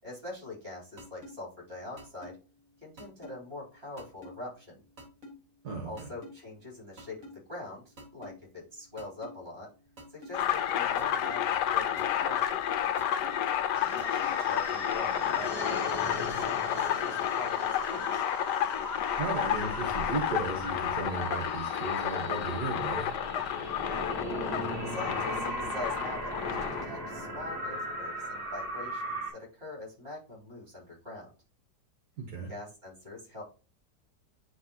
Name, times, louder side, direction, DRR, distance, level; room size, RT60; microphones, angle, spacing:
voice 1, 0.0-2.4 2.8-4.8 5.8-9.7 10.1-12.6 13.8-18.2 23.7-24.1 24.8-31.3 32.5-33.4, left 2 dB, 35° right, -3 dB, 3.4 m, -43 dB
sound 1, 1.0-1.3 2.0-2.3 3.0-3.3 4.0-4.3 5.0-5.3 6.0-6.3 7.0-7.3 8.0-8.3 9.0-9.3 10.0-10.3 11.0-11.3 12.0-12.3 13.0-13.3 14.0-14.3, equal, 50° right, 2.2 m, -46 dB
voice 2, 5.6-6.1 19.2-23.1 32.2-32.5, right 3 dB, 65° right, 1 dB, 1.7 m, -35 dB
sound 2, 10.3-26.8, left 10 dB, 75° left, 1.2 m, -31 dB
sound 3, 13.7-29.3, equal, 10° right, 3.2 m, -38 dB
10.0 x 3.6 x 2.9 m, 0.36 s
omnidirectional pair, 1.9 m